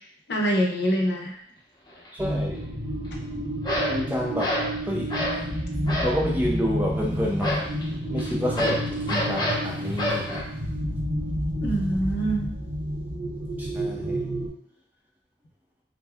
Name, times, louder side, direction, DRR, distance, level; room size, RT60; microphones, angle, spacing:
voice 1, 0.3-1.4 11.5-12.5, right 1 dB, 65° left, -1 dB, 0.7 m, -25 dB
sound 1, 1.9-2.1 3.6-4.0 4.4-4.7 5.1-5.5 5.9-6.2 7.4-10.4, equal, 25° left, 0.7 m, -27 dB
voice 2, 2.1-2.6 3.9-4.6 4.9-5.2 6.0-7.7 8.1-10.4 13.6-14.2, equal, 10° right, -3 dB, 0.3 m, -29 dB
sound 2, 2.2-14.5, equal, 40° right, 0.9 m, -30 dB
2.6 x 2.3 x 3.3 m, 0.68 s
head